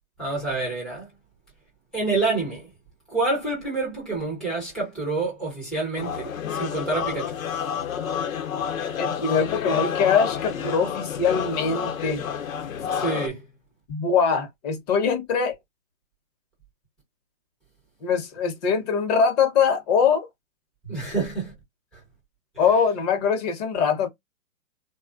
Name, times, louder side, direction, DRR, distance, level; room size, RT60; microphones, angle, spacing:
voice 1, 0.2-1.1 1.9-2.7 3.1-7.4 12.9-13.5 20.8-21.5, right 3 dB, ahead, 0.4 m, -27 dB
sound 1, 6.0-13.3, left 8 dB, 70° left, 1.0 m, -29 dB
voice 2, 9.0-12.3 13.9-15.5 18.0-20.3 22.6-24.1, left 6 dB, 30° left, 0.8 m, -22 dB
3.4 x 2.3 x 2.4 m
hypercardioid pair, 135°, 43 cm